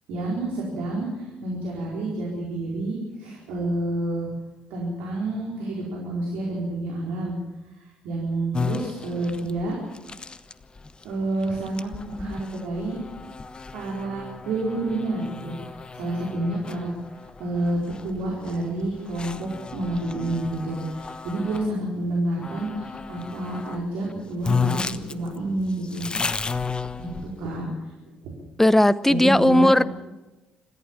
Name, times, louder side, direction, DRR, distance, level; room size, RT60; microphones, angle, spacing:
voice 1, 0.1-4.3 4.7-7.4 7.7-9.8 11.0-13.0 13.7-16.9 17.4-26.1 27.0-27.7 28.1-28.3 29.1-29.7, right 2 dB, 70° right, -3 dB, 4.6 m, -29 dB
sound 1, 8.5-21.7 22.4-23.8 24.1-24.2 24.4-27.5, left 5 dB, 30° left, 1.1 m, -33 dB
voice 2, 28.6-29.8, left 1 dB, 10° left, 18 dB, 0.9 m, -17 dB
26.5 x 14.5 x 7.5 m, 1.1 s
hypercardioid pair, 50°, 3 cm